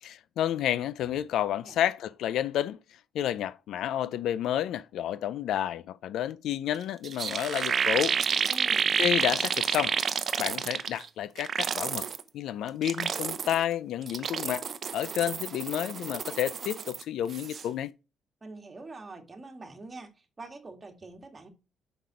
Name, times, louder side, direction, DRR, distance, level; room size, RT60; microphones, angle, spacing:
voice 1, 0.0-2.8 3.1-8.2 9.0-10.0 10.4-12.1 12.3-14.6 14.9-17.9, left 11 dB, 80° left, 0.4 m, -30 dB
voice 2, 1.4-1.8 8.4-9.0 18.4-21.5, right 3 dB, 30° right, 2.0 m, -45 dB
sound 1, 6.7-6.8 7.0-11.1 11.4-12.2 12.7-13.6 14.0-17.0 17.3-17.6, right 6 dB, 50° right, 0.7 m, -29 dB
6.0 x 5.2 x 4.7 m
cardioid pair, 90°, 0 cm